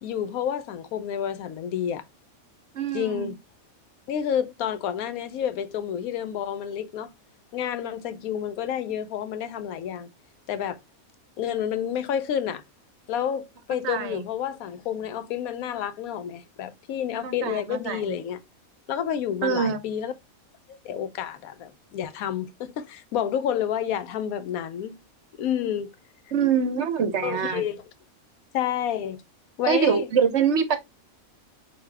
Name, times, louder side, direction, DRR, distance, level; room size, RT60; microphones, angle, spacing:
voice 1, 0.0-2.0 2.9-3.4 4.1-7.1 7.5-10.1 10.5-10.8 11.4-12.6 13.1-18.4 18.9-20.1 20.7-25.0 25.4-25.9 27.2-27.8 28.5-29.2 29.6-30.1, left 9 dB, 85° left, 1.1 m, -29 dB
voice 2, 2.7-3.3 13.8-14.3 17.2-18.2 19.4-19.8 26.3-27.6 29.6-30.8, right 7 dB, 60° right, 0.9 m, -24 dB
4.8 x 2.7 x 3.3 m
omnidirectional pair, 1.5 m